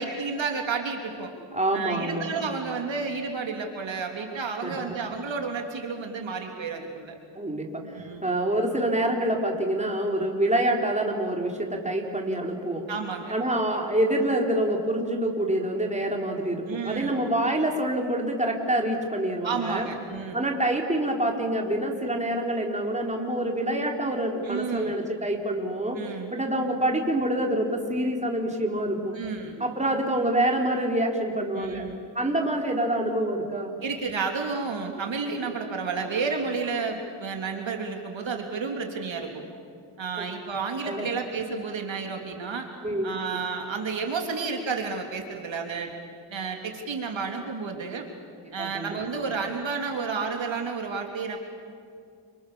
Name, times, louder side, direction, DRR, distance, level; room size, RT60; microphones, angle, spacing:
voice 1, 0.0-1.3 1.7-7.2 7.9-8.3 12.9-13.4 16.7-17.2 19.4-20.4 24.4-24.9 25.9-26.3 29.1-29.6 31.5-32.0 33.8-39.4 40.0-42.7 43.0-45.9 46.3-48.1 48.5-51.4, right 5 dB, 70° right, 3 dB, 3.3 m, -31 dB
voice 2, 1.5-2.3 4.6-5.0 7.4-12.9 13.3-19.9 20.3-26.0 26.3-29.1 29.6-31.8 32.1-33.7 40.2-40.3 40.8-41.1 42.8-43.1 48.6-49.0, right 1 dB, 15° right, 1 dB, 4.1 m, -26 dB
29.0 x 26.0 x 7.1 m, 2.3 s
cardioid pair, 75°, 47 cm